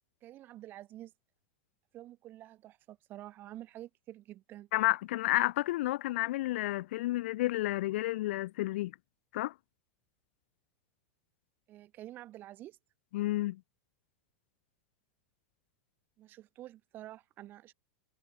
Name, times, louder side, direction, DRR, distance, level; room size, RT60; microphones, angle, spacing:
voice 1, 0.2-1.1 1.9-4.7 11.7-12.8 16.2-17.7, right 14 dB, 30° right, 5.1 m, -48 dB
voice 2, 4.7-8.9 9.3-9.5 13.1-13.6, left 17 dB, 65° left, 0.6 m, -31 dB
supercardioid pair, 160°, 7 cm